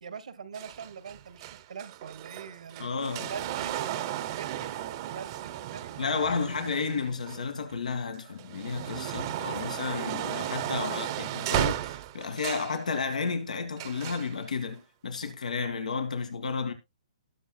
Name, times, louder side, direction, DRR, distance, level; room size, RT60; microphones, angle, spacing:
voice 1, 0.0-2.9 3.2-6.3, right 6 dB, 75° right, 1.6 m, -43 dB
sound 1, 0.5-7.7 8.2-12.8 13.8-14.3 15.2-15.3, right 13 dB, 35° right, 0.9 m, -35 dB
voice 2, 2.8-3.3 6.0-16.7, left 5 dB, 85° left, 2.1 m, -32 dB
19.0 x 6.6 x 2.3 m
hypercardioid pair, 150°, 4 cm